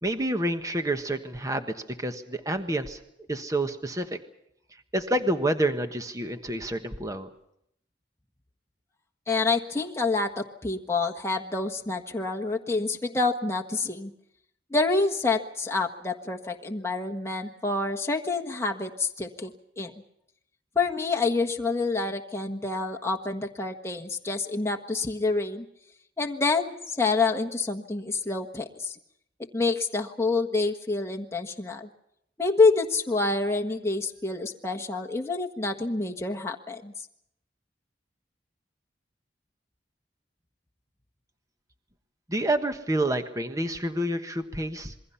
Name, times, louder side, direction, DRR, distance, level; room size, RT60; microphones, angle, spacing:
voice 1, 0.0-3.0 3.3-4.2 4.9-7.3 42.3-44.9, right 1 dB, 20° right, 7 dB, 1.3 m, -28 dB
voice 2, 9.3-14.1 14.7-19.9 20.7-25.6 26.2-29.0 29.5-31.9 32.4-36.9, left 3 dB, 15° left, 2 dB, 1.5 m, -27 dB
27.5 x 22.0 x 5.8 m, 0.74 s
head